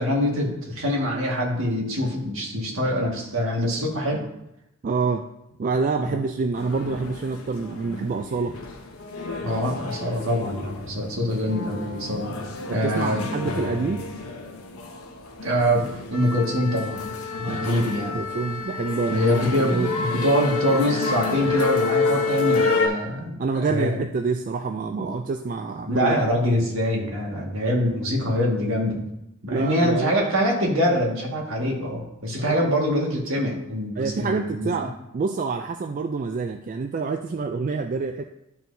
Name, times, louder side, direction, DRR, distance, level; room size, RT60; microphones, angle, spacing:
voice 1, 0.0-4.2 6.0-6.2 9.4-12.3 12.7-13.3 15.4-17.1 17.4-18.2 19.1-24.0 25.0-25.1 25.9-29.1 29.4-34.7, equal, 65° right, -2 dB, 1.8 m, -24 dB
voice 2, 4.8-5.2 5.6-8.5 12.7-14.0 17.4-19.9 23.4-26.3 29.5-30.3 32.4-32.7 34.0-38.2, right 4 dB, 40° right, 6 dB, 0.3 m, -27 dB
sound 1, 6.6-22.9, left 4 dB, 90° left, 1.0 m, -29 dB
Brass instrument, 8.9-15.8 16.0-16.1, left 2 dB, 65° left, 0.8 m, -39 dB
12.0 x 4.4 x 2.7 m, 0.86 s
head